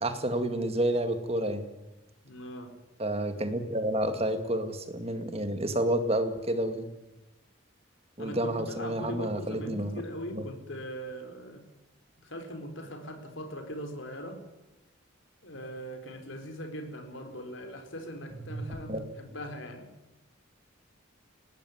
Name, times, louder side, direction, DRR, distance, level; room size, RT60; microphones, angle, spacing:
voice 1, 0.0-1.7 3.0-6.8 8.2-10.0 10.3-10.4 18.4-19.1, right 1 dB, 30° right, 8 dB, 2.1 m, -30 dB
voice 2, 2.2-2.7 8.2-11.6 12.2-14.4 15.4-19.9, equal, 70° left, 6 dB, 4.2 m, -40 dB
19.5 x 18.5 x 9.5 m, 0.98 s
head